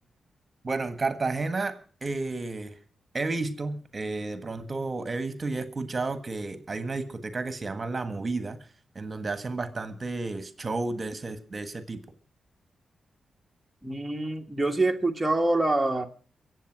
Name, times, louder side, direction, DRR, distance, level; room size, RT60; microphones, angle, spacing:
voice 1, 0.6-1.8 2.0-2.8 3.1-8.6 8.9-12.0, right 3 dB, 40° right, 11 dB, 1.5 m, -32 dB
voice 2, 13.8-16.1, right 2 dB, 10° right, 3 dB, 1.5 m, -25 dB
23.0 x 8.1 x 6.1 m, 0.42 s
cardioid pair, 60°, 0 cm